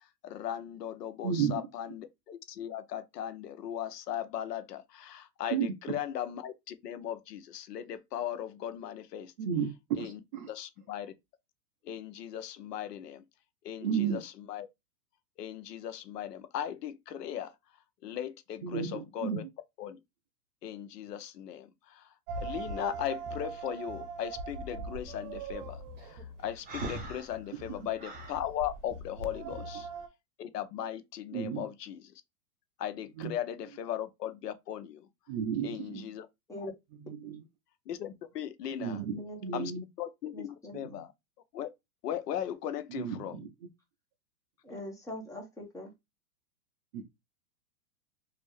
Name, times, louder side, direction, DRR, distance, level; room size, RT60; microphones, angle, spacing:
voice 1, 0.2-9.3 10.0-10.2 10.5-11.1 11.8-13.2 13.6-14.7 15.4-17.5 18.0-19.4 19.8-20.0 20.6-22.1 22.4-29.9 30.4-32.1 32.8-35.1 35.6-36.3 36.5-36.7 37.9-39.0 39.5-39.7 40.0-41.1 41.5-41.7 42.0-43.4, left 10 dB, 80° left, 0.7 m, -38 dB
voice 2, 1.2-1.6 5.5-6.0 9.4-9.7 10.0-10.5 13.8-14.2 18.6-19.4 29.4-29.5 31.3-31.7 33.2-33.4 35.3-36.1 37.0-37.4 38.8-39.8 40.7-41.0 42.9-43.5 46.9-47.0, right 7 dB, 35° right, 0.4 m, -33 dB
sound 1, 22.3-30.1, right 3 dB, 50° right, 0.9 m, -41 dB
Breathing, 26.7-28.4, right 2 dB, 20° right, 1.0 m, -40 dB
voice 3, 38.9-39.6 40.3-40.8 44.6-45.9, left 1 dB, 5° left, 0.9 m, -43 dB
3.1 x 2.6 x 3.0 m
hypercardioid pair, 135°, 48 cm